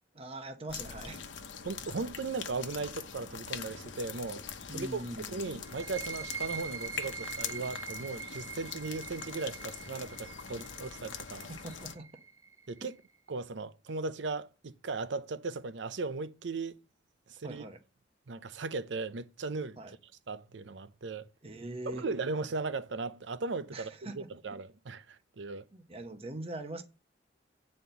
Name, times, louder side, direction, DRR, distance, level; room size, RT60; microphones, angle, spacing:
voice 1, 0.1-1.3 4.7-5.5 11.5-12.1 17.4-17.8 19.8-19.9 21.4-22.1 23.7-24.3 25.7-26.8, right 2 dB, 35° right, 0.9 m, -42 dB
sound 1, 0.7-11.9, left 7 dB, 90° left, 0.9 m, -43 dB
voice 2, 1.6-4.4 4.7-5.0 5.3-11.5 12.7-12.9 13.3-16.8 17.3-17.6 18.3-20.0 20.3-21.3 21.9-25.6, right 3 dB, 75° right, 0.6 m, -37 dB
sound 2, 5.6-13.1, right 6 dB, 15° right, 0.4 m, -43 dB
9.3 x 4.4 x 6.7 m
head